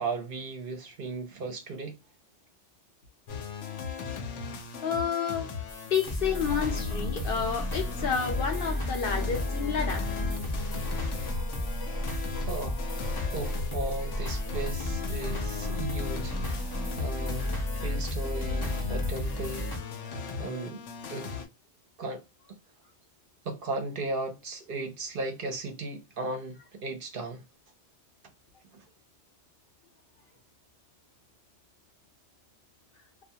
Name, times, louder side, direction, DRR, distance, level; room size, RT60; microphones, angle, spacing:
voice 1, 0.0-2.0 12.5-12.8 13.3-21.3 22.0-22.2 23.4-27.4 28.7-28.8, right 3 dB, 55° right, 0.8 m, -36 dB
sound 1, 3.3-21.5, left 6 dB, 85° left, 1.0 m, -38 dB
voice 2, 4.8-5.5 5.9-10.1, left 7 dB, 60° left, 0.7 m, -30 dB
sound 2, 5.7-19.8, left 1 dB, 25° left, 0.5 m, -33 dB
2.3 x 2.2 x 2.7 m
omnidirectional pair, 1.2 m